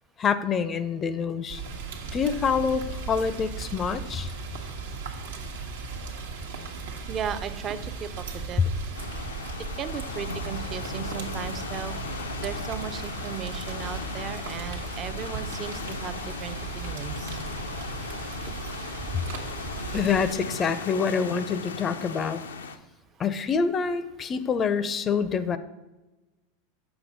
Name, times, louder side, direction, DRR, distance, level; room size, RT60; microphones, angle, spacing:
voice 1, 0.2-1.6 2.1-4.3 18.5-18.6 19.9-22.4 23.2-25.6, left 6 dB, 30° left, 14 dB, 0.5 m, -26 dB
Rain, 1.5-20.3, right 4 dB, 80° right, 1.0 m, -37 dB
voice 2, 7.1-8.6 9.8-12.0 12.4-17.4, right 8 dB, 35° right, 12 dB, 0.5 m, -36 dB
sound 1, 8.9-22.8, left 4 dB, 85° left, 0.5 m, -37 dB
6.9 x 5.6 x 4.0 m, 1.1 s
hypercardioid pair, 95°, 0 cm